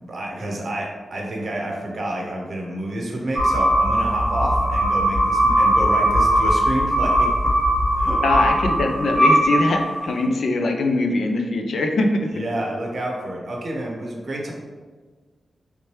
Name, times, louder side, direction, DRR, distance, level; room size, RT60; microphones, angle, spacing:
voice 1, 0.0-7.5 8.0-8.2 12.3-14.5, right 1 dB, 50° right, -1 dB, 0.7 m, -29 dB
sound 1, 3.4-10.1, equal, 10° left, 0.9 m, -19 dB
voice 2, 8.2-12.1, left 2 dB, 65° left, 3 dB, 0.4 m, -22 dB
3.2 x 3.0 x 3.1 m, 1.4 s
wide cardioid pair, 160°, 0 cm